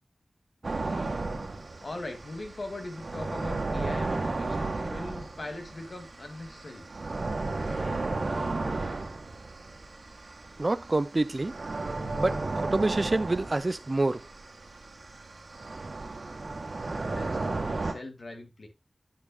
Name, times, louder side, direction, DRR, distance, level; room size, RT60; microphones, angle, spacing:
sound 1, 0.6-17.9, right 3 dB, 70° right, 1.7 m, -34 dB
voice 1, 1.8-6.9 17.0-18.7, left 2 dB, 65° left, 2.4 m, -40 dB
voice 2, 10.6-11.5 12.2-14.2, right 2 dB, 45° right, 0.5 m, -27 dB
9.7 x 9.3 x 2.3 m
wide cardioid pair, 55°, 0 cm